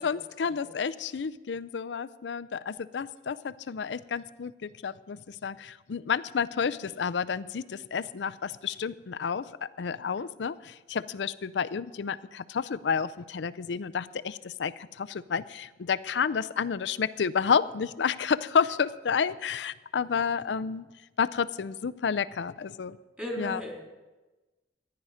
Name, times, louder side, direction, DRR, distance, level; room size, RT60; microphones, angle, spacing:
voice 1, 0.0-20.9 21.2-23.0 23.4-23.6, left 6 dB, 90° left, 15 dB, 0.5 m, -30 dB
voice 2, 23.2-23.8, equal, 10° right, -2 dB, 3.5 m, -36 dB
14.5 x 10.5 x 5.0 m, 1.1 s
head